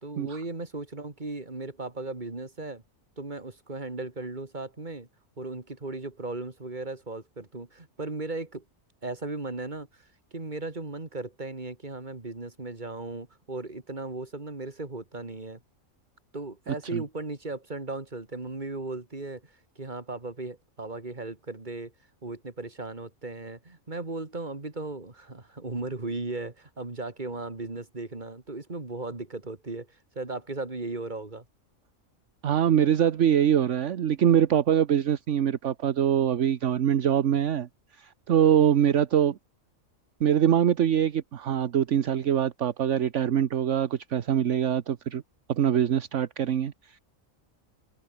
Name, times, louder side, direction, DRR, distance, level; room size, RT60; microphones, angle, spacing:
voice 1, 0.0-2.8 3.2-5.1 5.4-8.6 9.0-15.6 16.3-19.4 19.8-21.9 22.2-29.9 30.1-31.4, right 3 dB, 35° right, 2.8 m, -36 dB
voice 2, 32.4-37.7 38.0-39.4 40.2-45.2 45.5-46.7, right 9 dB, 65° right, 1.2 m, -23 dB
omnidirectional pair, 1.4 m